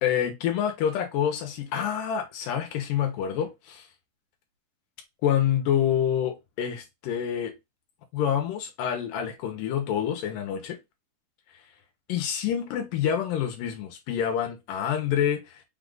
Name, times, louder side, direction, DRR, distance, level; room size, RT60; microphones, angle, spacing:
voice 1, 0.0-3.9 5.2-7.5 8.1-10.8 12.1-15.6, left 9 dB, 85° left, 2.5 m, -27 dB
5.8 x 2.4 x 3.7 m
omnidirectional pair, 3.7 m